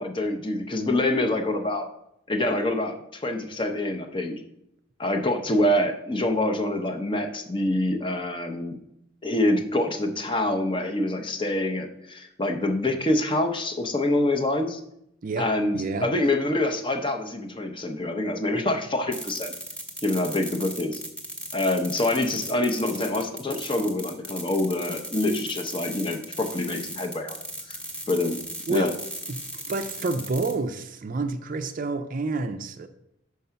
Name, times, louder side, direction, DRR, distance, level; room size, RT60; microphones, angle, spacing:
voice 1, 0.0-1.9 2.3-4.4 5.0-8.8 9.2-14.8 15.4-19.5 20.0-21.0 21.5-27.4 27.7-27.8 28.1-28.4 28.7-28.9, left 1 dB, 25° left, 0.6 m, -26 dB
voice 2, 15.2-16.1 28.7-29.0 29.3-32.9, right 3 dB, 40° right, 0.4 m, -29 dB
sound 1, 19.1-30.5, right 1 dB, 5° left, 0.9 m, -37 dB
5.4 x 4.6 x 5.7 m
head